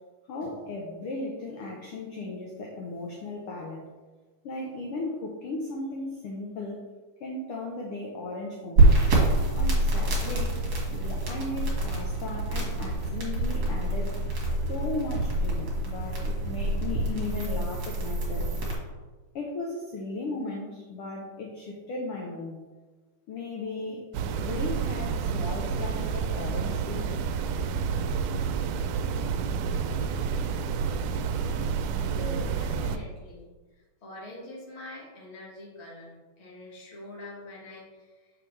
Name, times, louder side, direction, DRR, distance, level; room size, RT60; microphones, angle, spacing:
voice 1, 0.3-3.9 4.4-6.8 7.2-8.9 9.5-10.5 10.9-14.2 14.7-18.5 19.3-22.6 23.3-24.1 24.4-27.1, left 2 dB, 75° left, -1 dB, 1.3 m, -36 dB
sound 1, 8.8-18.7, right 2 dB, 45° right, 2.0 m, -26 dB
sound 2, 24.1-33.0, right 6 dB, 85° right, 2.0 m, -29 dB
voice 2, 32.1-38.3, left 1 dB, 30° left, -4 dB, 1.2 m, -44 dB
6.9 x 5.5 x 3.2 m, 1.3 s
omnidirectional pair, 3.5 m